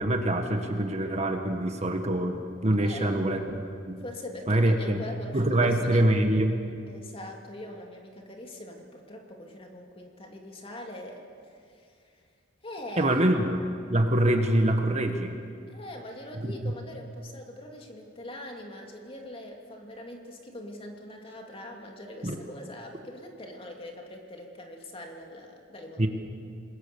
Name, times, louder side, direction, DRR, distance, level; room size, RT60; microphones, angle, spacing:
voice 1, 0.0-4.0 4.5-5.0 5.3-6.6 13.0-13.6 13.9-15.4 16.4-16.5 22.2-22.4 26.0-26.1, right 1 dB, 35° right, 5 dB, 1.6 m, -25 dB
voice 2, 2.8-3.2 4.0-6.1 6.9-12.3 12.6-13.2 15.7-26.1, left 1 dB, 30° left, 1 dB, 2.8 m, -42 dB
27.0 x 21.0 x 7.0 m, 2.3 s
head